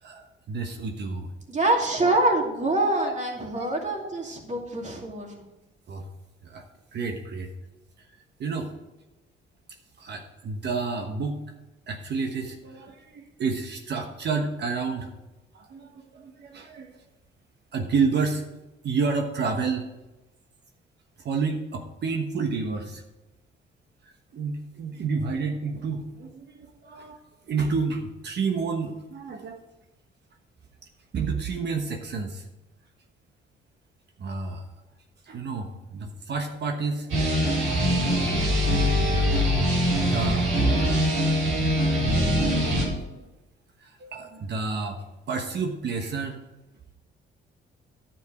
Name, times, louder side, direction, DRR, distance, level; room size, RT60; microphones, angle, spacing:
voice 1, 0.0-1.3 3.0-3.1 3.5-3.7 5.9-6.1 6.4-6.6 6.9-7.5 8.4-8.7 10.0-11.4 11.9-15.1 15.5-17.0 17.7-18.4 18.8-19.9 21.2-23.0 24.0-27.2 27.5-29.6 31.1-32.5 34.2-34.7 35.2-37.5 40.0-41.8 42.2-42.3 42.9-43.2 43.8-46.4, right 4 dB, 60° right, 3 dB, 1.2 m, -30 dB
voice 2, 1.5-5.4, right 2 dB, 35° right, 1 dB, 2.6 m, -25 dB
sound 1, 37.1-42.8, equal, 80° right, 3.5 m, -23 dB
10.5 x 7.5 x 4.9 m, 1.0 s
cardioid pair, 90°, 20 cm